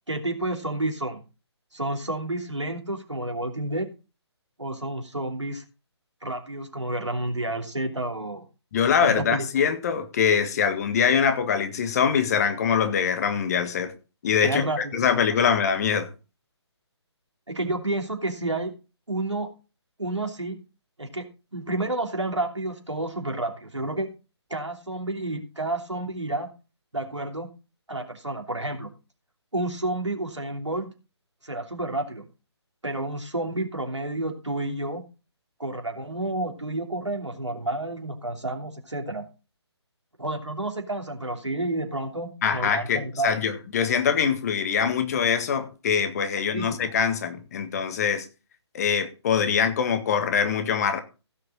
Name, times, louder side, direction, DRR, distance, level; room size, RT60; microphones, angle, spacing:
voice 1, 0.1-1.2 1.7-3.9 4.6-5.6 6.2-8.5 9.0-9.5 14.4-15.2 17.5-18.7 19.1-19.5 20.0-20.6 21.0-21.3 21.5-24.1 24.5-26.5 26.9-27.5 27.9-28.9 29.5-30.9 31.4-32.3 32.8-35.0 35.6-39.3 40.2-43.3 46.3-46.8, right 2 dB, 90° right, 3.0 m, -30 dB
voice 2, 8.7-13.9 14.2-14.6 14.9-16.1 42.4-48.3 48.7-51.0, left 7 dB, 35° left, 1.7 m, -23 dB
16.0 x 6.7 x 4.2 m
figure-of-eight pair, 145°, 15 cm